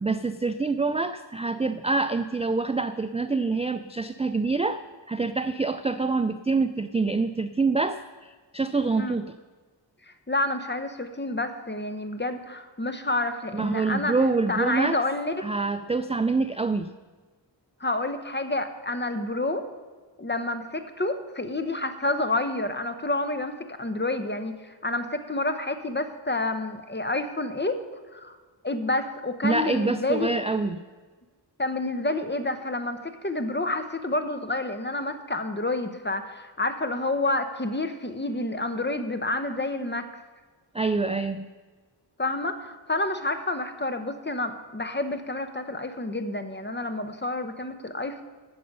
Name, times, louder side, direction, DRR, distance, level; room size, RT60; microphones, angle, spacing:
voice 1, 0.0-9.3 13.5-15.0 15.4-16.9 29.4-30.8 40.7-41.5, right 3 dB, 15° right, 11 dB, 0.3 m, -26 dB
voice 2, 10.3-14.1 14.5-15.5 17.8-19.7 20.2-27.8 28.1-28.4 28.6-30.4 31.6-40.1 42.2-48.2, left 2 dB, 25° left, 9 dB, 1.0 m, -29 dB
14.5 x 6.7 x 5.4 m, 1.4 s
wide cardioid pair, 55°, 46 cm